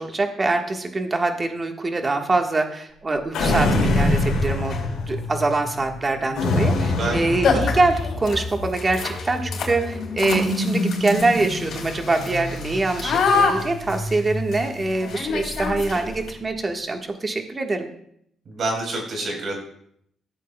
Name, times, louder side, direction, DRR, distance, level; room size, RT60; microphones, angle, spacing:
voice 1, 0.0-4.8 5.1-17.9, right 3 dB, 30° right, 4 dB, 1.3 m, -24 dB
sound 1, 3.3-5.2 6.4-8.2, left 2 dB, 80° left, 2.3 m, -23 dB
sound 2, 3.4-16.6, left 1 dB, 40° left, 2.6 m, -31 dB
sound 3, 4.0-4.1 4.6-5.0 6.7-6.8 7.1-7.2 7.4-16.3, left 5 dB, 65° left, 3.4 m, -27 dB
voice 2, 18.5-19.6, right 2 dB, 55° right, 1 dB, 4.0 m, -27 dB
15.0 x 8.2 x 2.2 m, 0.69 s
cardioid pair, 90°, 0 cm